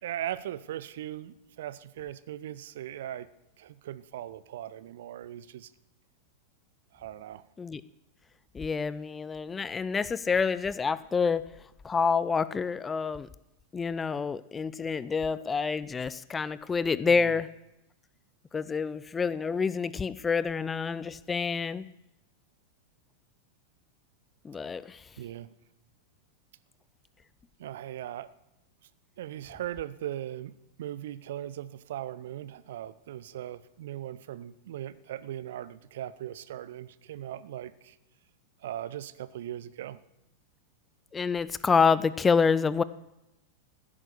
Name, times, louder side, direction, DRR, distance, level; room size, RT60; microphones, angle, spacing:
voice 1, 0.0-3.3 3.6-5.7 6.9-7.4 17.0-17.4 25.2-25.5 27.6-28.3 29.2-38.0 38.6-40.0, right 12 dB, 55° right, 17 dB, 0.7 m, -39 dB
voice 2, 8.5-11.4 11.8-13.3 13.7-17.5 18.5-21.9 24.4-25.0 41.1-42.8, left 5 dB, 15° left, 18 dB, 0.5 m, -27 dB
15.5 x 10.0 x 6.7 m, 0.89 s
figure-of-eight pair, 90°, 0 cm